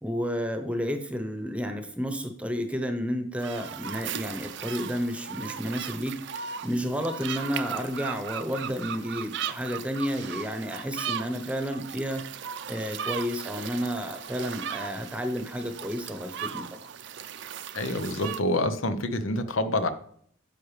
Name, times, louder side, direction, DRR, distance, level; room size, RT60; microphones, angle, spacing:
voice 1, 0.0-12.2 12.7-16.7, equal, 5° right, 6 dB, 0.9 m, -31 dB
sound 1, 3.4-18.4, right 8 dB, 60° right, 0.5 m, -37 dB
voice 2, 17.7-19.9, left 1 dB, 85° left, 10 dB, 0.8 m, -27 dB
9.8 x 6.7 x 3.3 m, 0.63 s
head